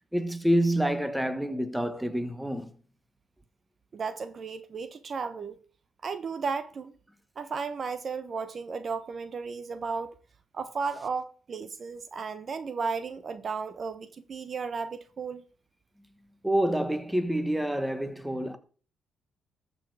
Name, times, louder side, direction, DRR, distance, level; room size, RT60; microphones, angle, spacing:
voice 1, 0.0-2.7 16.4-18.6, right 1 dB, 5° right, 1.3 m, -27 dB
voice 2, 3.9-5.6 6.0-6.9 7.4-10.2 10.5-15.4, right 5 dB, 45° right, 1.0 m, -34 dB
13.5 x 6.6 x 4.9 m
cardioid pair, 90°, 0 cm